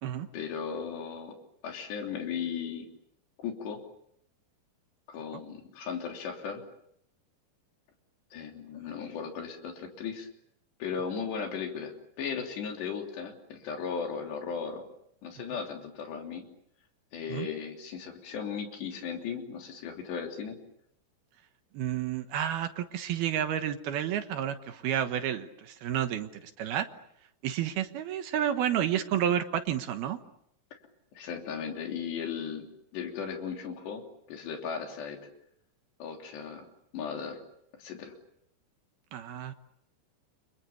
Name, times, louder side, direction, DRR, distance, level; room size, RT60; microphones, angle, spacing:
voice 1, 0.3-1.4 1.6-2.9 3.4-3.8 5.1-6.6 8.3-10.3 10.8-14.9 15.2-16.5 17.1-20.6 31.1-32.7 32.9-34.0 34.3-35.2 36.0-36.7 36.9-37.4 37.8-38.1, left 6 dB, 75° left, 3 dB, 5.4 m, -36 dB
voice 2, 21.7-26.9 27.4-30.2 39.1-39.6, right 10 dB, 70° right, 8 dB, 3.0 m, -30 dB
30.0 x 26.5 x 7.1 m, 0.74 s
omnidirectional pair, 5.0 m